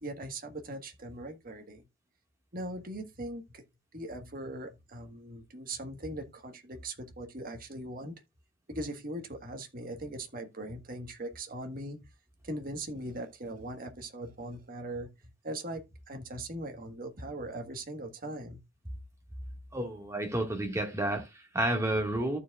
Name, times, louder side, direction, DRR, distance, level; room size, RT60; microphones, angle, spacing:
voice 1, 0.0-1.8 2.5-3.6 3.9-8.1 8.7-12.0 12.4-15.1 15.4-18.6, right 1 dB, 45° right, 1.5 m, -40 dB
voice 2, 19.7-22.4, right 1 dB, 15° right, 1.8 m, -31 dB
14.5 x 4.9 x 2.4 m
head